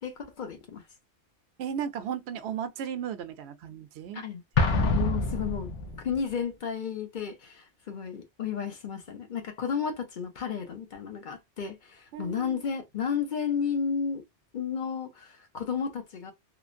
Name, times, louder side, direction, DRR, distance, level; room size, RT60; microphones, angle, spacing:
voice 1, 0.0-0.8 4.1-4.4 5.0-5.7 6.0-14.2 14.5-16.3, left 7 dB, 50° left, 0.7 m, -32 dB
voice 2, 1.6-4.2 4.6-4.7 12.1-12.6, right 8 dB, 65° right, 0.8 m, -35 dB
Explosion, 4.6-6.2, left 3 dB, 80° left, 1.0 m, -26 dB
3.1 x 2.0 x 2.5 m
omnidirectional pair, 1.2 m